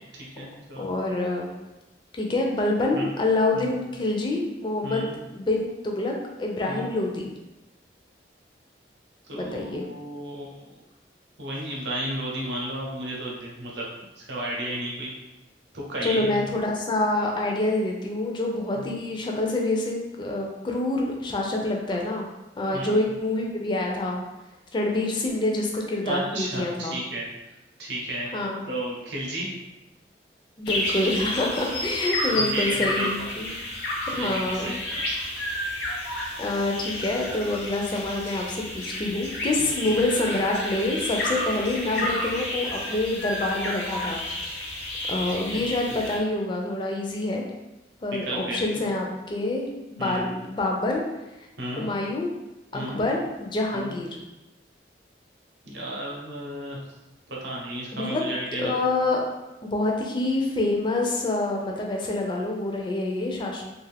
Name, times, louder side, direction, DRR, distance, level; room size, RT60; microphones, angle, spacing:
voice 1, 0.1-0.9 2.9-3.0 3.5-3.7 4.8-5.2 6.7-6.9 9.2-10.6 11.4-13.9 14.2-15.1 15.7-16.5 18.7-18.8 22.7-23.0 26.0-28.3 28.7-29.5 32.4-33.3 34.1-35.0 39.6-40.0 45.3-45.6 48.1-48.8 50.0-50.4 51.6-51.9 52.7-53.1 53.7-54.0 55.7-56.8 57.3-58.7, right 1 dB, 80° right, -3 dB, 0.7 m, -33 dB
voice 2, 0.8-1.5 2.2-6.1 6.4-7.3 9.3-9.8 16.0-22.3 22.6-24.2 24.7-27.0 28.3-28.6 30.6-33.5 34.1-34.7 36.4-44.2 44.5-44.7 45.1-47.4 48.0-51.0 51.8-52.3 52.7-54.1 57.9-58.2 58.6-59.2 59.6-63.6, left 2 dB, 25° left, 0 dB, 0.4 m, -26 dB
sound 1, 30.7-46.2, left 1 dB, 70° left, 0.7 m, -31 dB
2.5 x 2.4 x 3.3 m, 1.0 s
head